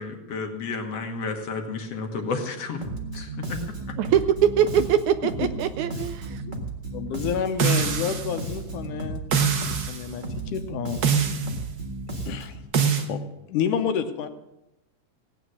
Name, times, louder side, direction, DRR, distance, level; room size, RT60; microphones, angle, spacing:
voice 1, 0.0-3.6, left 4 dB, 60° left, 4 dB, 2.0 m, -32 dB
Bass guitar, 2.8-12.7, right 2 dB, 30° right, 0.9 m, -34 dB
voice 2, 4.0-6.4, right 9 dB, 80° right, 11 dB, 1.9 m, -22 dB
voice 3, 6.9-9.2 9.7-11.0 12.3-12.6 12.9-13.2 13.5-14.3, left 8 dB, 75° left, 8 dB, 2.4 m, -29 dB
sound 1, 7.6-8.4 9.3-10.0 11.0-11.6 12.7-13.1, right 6 dB, 60° right, 1.2 m, -23 dB
17.0 x 9.4 x 6.3 m, 0.91 s
omnidirectional pair, 3.7 m